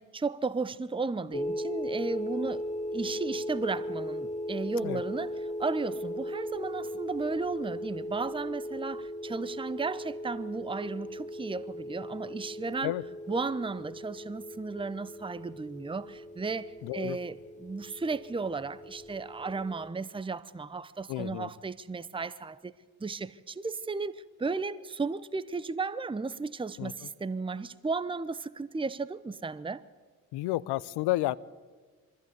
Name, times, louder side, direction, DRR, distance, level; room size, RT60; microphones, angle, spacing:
voice 1, 0.0-2.6 2.9-5.3 5.6-12.9 13.3-22.7 23.0-29.8, right 4 dB, 10° right, 0.8 m, -34 dB
sound 1, 1.3-19.9, equal, 15° left, 1.1 m, -38 dB
voice 2, 16.8-17.2 21.1-21.5 26.8-26.9 30.3-31.4, left 17 dB, 70° left, 0.7 m, -31 dB
23.5 x 14.5 x 8.2 m
hypercardioid pair, 40°, 42 cm